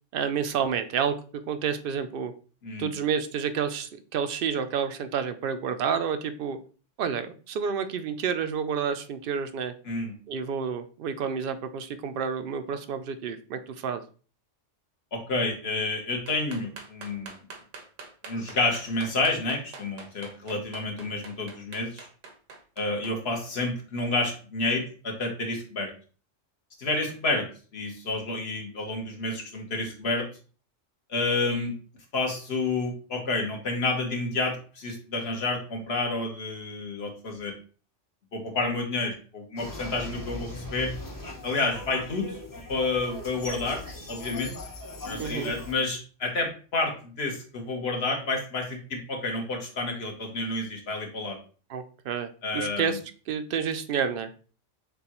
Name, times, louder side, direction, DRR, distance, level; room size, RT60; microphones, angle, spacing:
voice 1, 0.1-1.2 1.5-2.3 2.8-6.6 7.0-9.7 10.3-14.0 45.2-45.5 51.7-53.0 53.3-54.3, right 7 dB, 60° right, 9 dB, 0.6 m, -29 dB
voice 2, 15.1-17.4 18.3-22.1 22.8-25.9 26.8-27.5 27.7-30.3 31.1-31.7 32.1-37.5 38.3-40.9 41.4-42.4 42.7-44.5 45.0-51.4 52.4-53.0, left 2 dB, 55° left, 2 dB, 1.3 m, -29 dB
sound 1, 16.3-23.1, right 4 dB, 85° right, 1.2 m, -44 dB
sound 2, 39.6-45.7, left 2 dB, 20° left, 0.7 m, -39 dB
6.7 x 2.3 x 2.9 m, 0.38 s
omnidirectional pair, 1.3 m